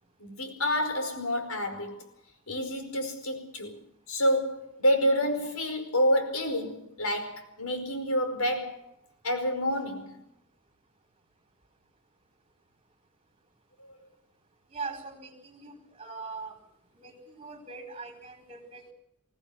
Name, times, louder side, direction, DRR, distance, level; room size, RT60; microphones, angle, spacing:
voice 1, 0.2-2.1 2.5-3.8 4.1-8.9 9.2-10.2 13.8-14.0, equal, 85° left, 4.9 m, -28 dB
voice 2, 14.7-16.6 16.9-18.9, right 4 dB, 25° right, 4.7 m, -41 dB
22.5 x 17.0 x 7.7 m
head